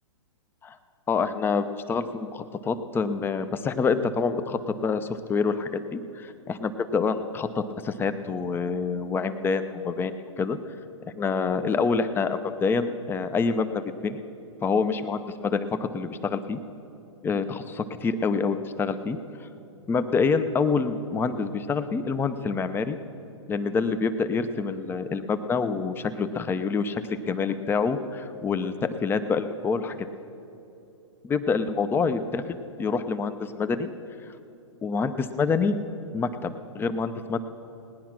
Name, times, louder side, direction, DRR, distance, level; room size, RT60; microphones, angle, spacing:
voice 1, 1.1-10.6 11.2-14.2 14.6-16.6 17.2-19.2 19.9-23.0 23.5-30.1 31.2-33.9 34.8-35.7 36.1-37.4, left 5 dB, 15° left, 10 dB, 0.6 m, -27 dB
18.5 x 10.0 x 6.0 m, 2.9 s
hypercardioid pair, 125°, 16 cm